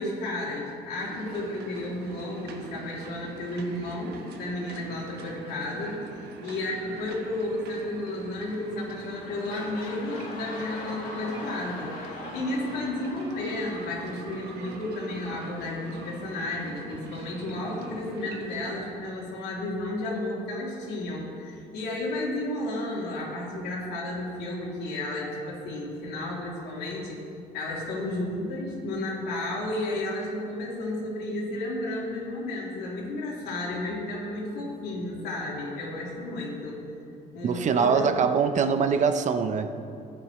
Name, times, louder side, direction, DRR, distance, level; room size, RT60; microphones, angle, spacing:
voice 1, 0.0-6.0 6.4-27.2 27.5-36.8 37.3-38.1, left 2 dB, 85° left, -4 dB, 2.9 m, -32 dB
sound 1, 1.0-18.8, right 5 dB, 75° right, 1.1 m, -43 dB
sound 2, 9.0-14.8 15.4-15.5, left 2 dB, 55° left, 2.2 m, -42 dB
voice 2, 37.4-39.7, right 6 dB, 45° right, 9 dB, 0.7 m, -23 dB
14.5 x 9.6 x 3.2 m, 2.6 s
cardioid pair, 110°, 17 cm